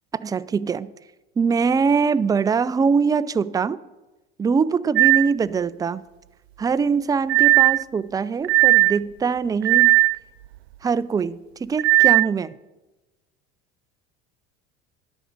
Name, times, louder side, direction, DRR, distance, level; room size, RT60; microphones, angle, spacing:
voice 1, 0.1-0.9 1.4-3.8 4.4-6.0 6.6-10.0 10.8-12.5, right 5 dB, 15° right, 0.3 m, -23 dB
sound 1, 5.0-5.3 7.3-7.8 8.4-9.0 9.6-10.2 11.8-12.3, right 23 dB, 85° right, 0.5 m, -16 dB
10.5 x 6.3 x 6.6 m
hypercardioid pair, 75°, 31 cm